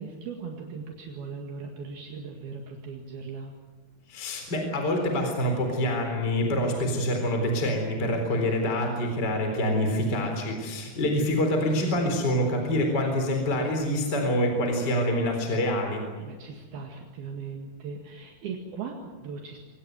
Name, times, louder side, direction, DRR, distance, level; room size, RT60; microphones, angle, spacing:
voice 1, 0.0-3.5 16.2-19.6, right 5 dB, 70° right, 1 dB, 3.8 m, -38 dB
voice 2, 4.1-16.0, left 1 dB, 25° left, 4 dB, 4.3 m, -26 dB
25.5 x 18.5 x 9.4 m, 1.4 s
omnidirectional pair, 4.7 m